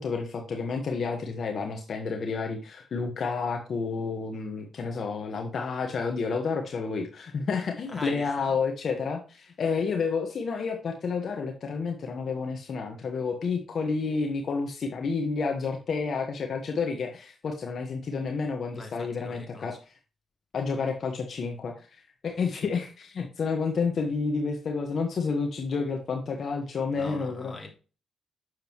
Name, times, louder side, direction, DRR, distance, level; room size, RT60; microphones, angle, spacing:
voice 1, 0.0-19.9 20.5-27.6, left 4 dB, 60° left, 1.4 m, -30 dB
voice 2, 7.9-8.6 18.7-19.8 26.9-27.7, left 2 dB, 25° left, 3.0 m, -42 dB
7.8 x 6.7 x 3.1 m
supercardioid pair, 65°, 0 cm